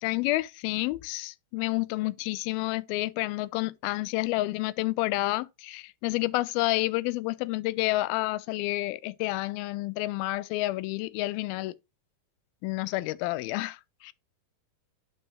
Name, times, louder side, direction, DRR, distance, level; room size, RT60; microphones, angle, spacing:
voice 1, 0.0-11.8 12.6-14.1, left 19 dB, 80° left, 2.3 m, -29 dB
11.0 x 4.2 x 3.4 m
omnidirectional pair, 4.4 m